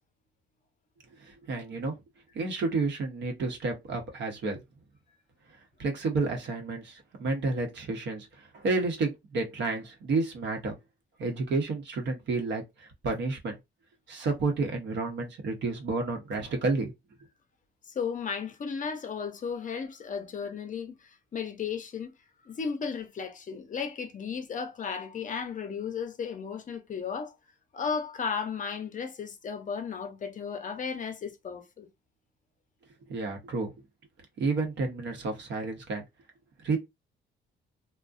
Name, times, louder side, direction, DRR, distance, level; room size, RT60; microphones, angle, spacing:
voice 1, 1.2-2.0 2.3-4.6 5.8-10.8 11.2-13.5 14.1-16.9 33.1-33.7 34.4-36.1 36.6-36.8, right 3 dB, 65° right, 0.8 m, -30 dB
voice 2, 17.9-22.1 22.4-27.3 27.7-31.9, left 6 dB, 40° left, 0.6 m, -35 dB
2.5 x 2.1 x 2.4 m
cardioid pair, 90°, 20 cm